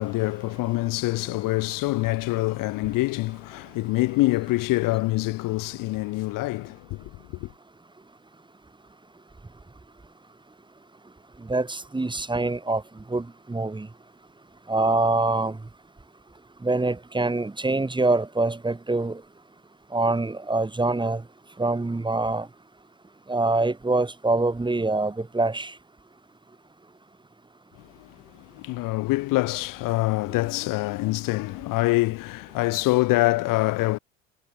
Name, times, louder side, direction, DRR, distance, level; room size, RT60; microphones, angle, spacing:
voice 1, 0.0-7.5 27.8-34.0, left 20 dB, 55° left, 4.0 m, -25 dB
voice 2, 11.4-12.8 13.1-13.9 14.7-15.6 16.6-19.2 19.9-21.2 21.6-22.5 23.3-25.7, right 2 dB, 10° right, 5.2 m, -25 dB
hypercardioid pair, 70°, 39 cm